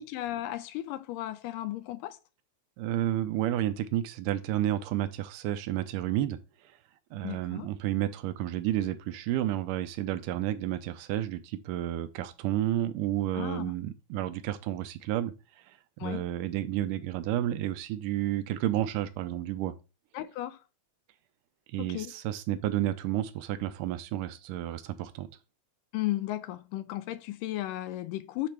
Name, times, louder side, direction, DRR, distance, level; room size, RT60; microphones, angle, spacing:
voice 1, 0.0-2.2 7.2-7.7 13.3-13.7 16.0-16.2 20.1-20.6 21.8-22.1 25.9-28.5, left 15 dB, 85° left, 2.2 m, -35 dB
voice 2, 2.8-6.4 7.1-15.3 16.0-19.7 21.7-25.3, right 13 dB, 80° right, 2.1 m, -31 dB
8.4 x 3.4 x 4.5 m
omnidirectional pair, 3.8 m